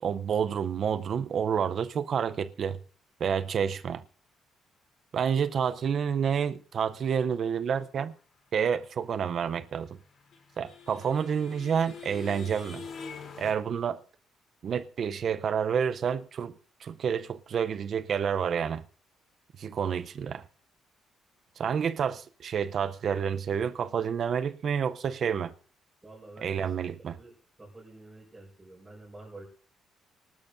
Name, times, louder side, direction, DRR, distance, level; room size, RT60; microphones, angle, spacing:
voice 1, 0.0-2.8 3.2-4.0 5.1-8.1 8.5-10.0 10.6-12.8 13.4-14.0 14.6-18.8 19.6-20.4 21.6-25.5 26.4-27.2, right 7 dB, 55° right, 0.6 m, -29 dB
sound 1, 9.7-13.5, left 6 dB, 60° left, 3.2 m, -44 dB
voice 2, 26.0-26.6 27.2-27.3 27.6-29.5, right 2 dB, 20° right, 5.1 m, -48 dB
24.0 x 12.0 x 2.6 m
cardioid pair, 90°, 0 cm